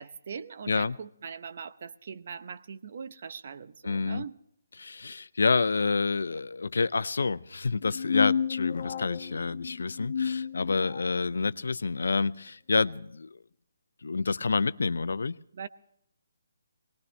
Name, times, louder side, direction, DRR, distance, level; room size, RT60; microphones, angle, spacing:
voice 1, 0.0-4.4 15.5-15.7, right 6 dB, 55° right, 12 dB, 0.8 m, -41 dB
voice 2, 3.8-4.2 4.8-13.4 14.0-15.4, left 4 dB, 75° left, 17 dB, 0.5 m, -28 dB
sound 1, 7.8-11.2, left 7 dB, 55° left, 0.9 m, -31 dB
22.0 x 19.0 x 3.3 m, 0.71 s
figure-of-eight pair, 150°, 0 cm